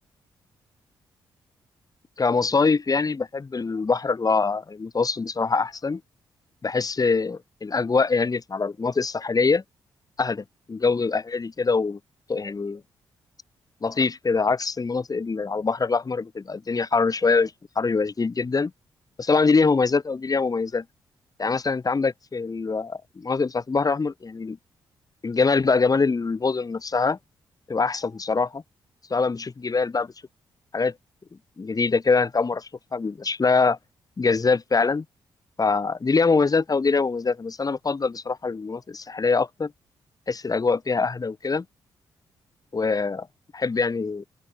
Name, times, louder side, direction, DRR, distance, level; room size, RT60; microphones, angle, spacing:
voice 1, 2.2-6.0 6.6-9.6 10.2-10.4 10.7-12.0 12.3-12.8 13.8-17.5 17.8-18.7 19.2-20.8 21.4-24.6 25.2-27.2 27.7-28.6 29.1-30.1 30.7-30.9 31.6-33.8 34.2-35.0 35.6-39.7 40.3-41.6 42.7-43.3 43.5-44.3, left 4 dB, 40° left, 2.9 m, -23 dB
open air
supercardioid pair, 50°, 10 cm